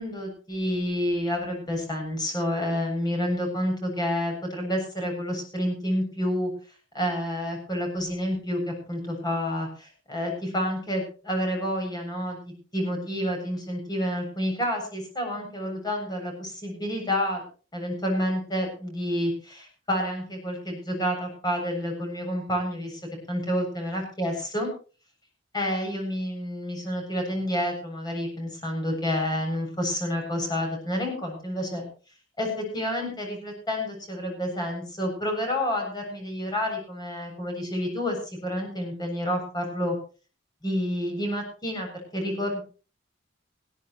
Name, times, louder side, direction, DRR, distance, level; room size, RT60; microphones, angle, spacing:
voice 1, 0.0-6.5 6.9-17.4 17.7-23.0 23.3-24.7 25.5-31.8 32.4-39.9 40.6-42.6, equal, 20° left, 2 dB, 7.7 m, -29 dB
20.5 x 16.0 x 3.2 m, 0.37 s
head